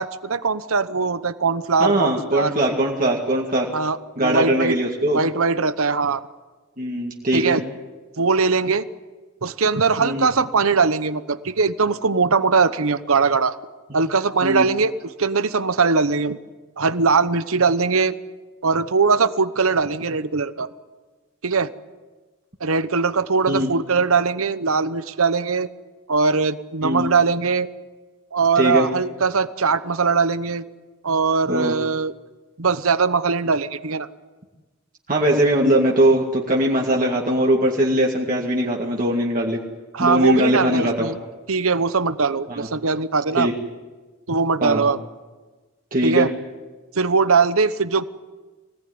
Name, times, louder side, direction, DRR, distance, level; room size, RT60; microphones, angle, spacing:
voice 1, 0.0-2.5 3.7-4.8 5.1-6.2 7.3-7.6 8.2-8.9 9.4-13.6 13.9-14.9 15.2-16.4 16.8-18.2 18.6-20.7 21.4-21.7 22.6-25.7 26.1-27.7 28.3-30.6 31.0-32.1 32.6-34.1 39.9-41.2 41.5-43.5 44.3-45.0 46.0-46.3 46.9-48.0, right 4 dB, 70° right, 13 dB, 1.0 m, -20 dB
voice 2, 1.8-3.7 4.2-5.2 6.8-7.6 10.0-10.3 14.4-14.7 23.5-23.7 26.8-27.1 28.6-28.9 31.5-31.7 35.1-39.6 40.0-41.1 42.5-42.7 43.4-43.5 44.6-44.9 45.9-46.3, right 1 dB, 40° right, -1 dB, 2.2 m, -20 dB
24.5 x 18.0 x 9.6 m, 1.3 s
head